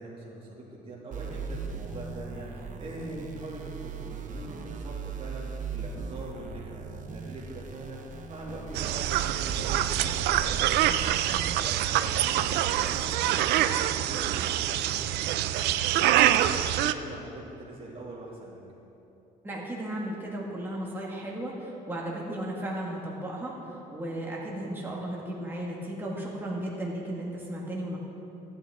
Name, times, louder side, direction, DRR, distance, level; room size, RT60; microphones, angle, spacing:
voice 1, 0.0-11.3 11.6-16.1 16.3-18.6, right 1 dB, 35° right, -5 dB, 2.5 m, -43 dB
sound 1, 1.1-13.0, right 5 dB, 50° right, 0.9 m, -39 dB
sound 2, 8.7-16.9, right 12 dB, 80° right, 0.4 m, -25 dB
voice 2, 19.4-28.0, right 1 dB, 10° right, -4 dB, 2.0 m, -35 dB
15.0 x 8.8 x 3.7 m, 2.9 s
cardioid pair, 110°, 17 cm